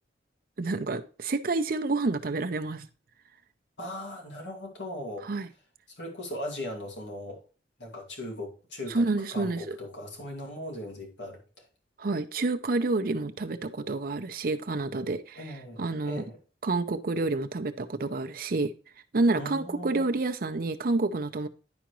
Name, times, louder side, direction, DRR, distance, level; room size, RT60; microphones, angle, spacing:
voice 1, 0.6-2.9 5.2-5.5 8.9-9.8 12.0-16.2 16.6-18.7 19.1-21.5, right 3 dB, 50° right, 0.6 m, -29 dB
voice 2, 3.8-5.3 6.0-7.4 7.8-9.1 9.3-11.7 15.4-16.4 19.3-20.1, left 1 dB, 85° left, 2.3 m, -38 dB
10.5 x 5.0 x 3.0 m
head